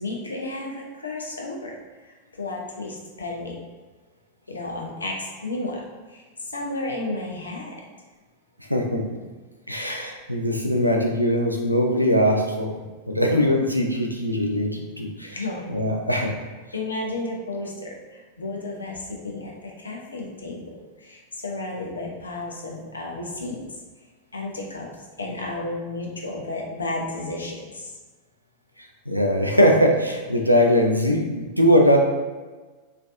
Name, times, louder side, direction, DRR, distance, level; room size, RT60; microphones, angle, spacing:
voice 1, 0.0-1.7 2.0-3.6 4.5-5.8 6.1-7.8 15.3-15.7 16.1-16.3 16.7-20.6 21.0-23.6 24.3-24.9 25.2-27.9, left 2 dB, 75° left, -1 dB, 0.6 m, -32 dB
voice 2, 8.7-9.0 9.7-12.7 13.1-15.4 15.7-16.3 29.1-32.0, equal, 90° right, 0 dB, 0.4 m, -21 dB
3.2 x 2.6 x 2.5 m, 1.3 s
figure-of-eight pair, 90°, 0 cm